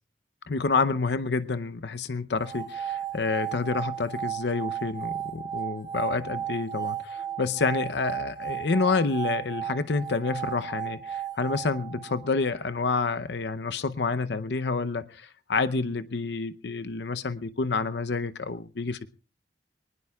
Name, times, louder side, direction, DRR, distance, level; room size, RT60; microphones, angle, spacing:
voice 1, 0.5-19.1, left 4 dB, 75° left, 0.7 m, -28 dB
sound 1, 2.4-12.5, right 9 dB, 20° right, 1.3 m, -34 dB
23.5 x 19.5 x 2.3 m
head